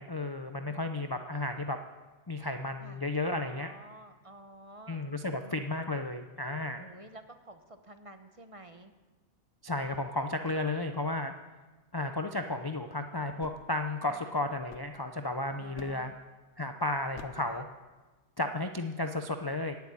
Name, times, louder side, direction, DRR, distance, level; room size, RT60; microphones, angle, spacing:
voice 1, 0.0-1.8 2.3-3.7 4.9-6.9 9.6-11.3 11.9-16.1 16.6-17.6 18.4-19.8, left 2 dB, 35° left, 6 dB, 0.4 m, -33 dB
voice 2, 0.6-1.1 2.8-5.0 5.4-5.6 6.7-8.9 14.1-14.3 15.5-16.1 17.4-17.7, right 1 dB, 25° right, 7 dB, 0.9 m, -50 dB
sound 1, 13.4-15.3 15.8-16.3 17.1-17.6, left 6 dB, 60° left, 1.0 m, -52 dB
15.5 x 6.9 x 9.5 m, 1.2 s
omnidirectional pair, 1.4 m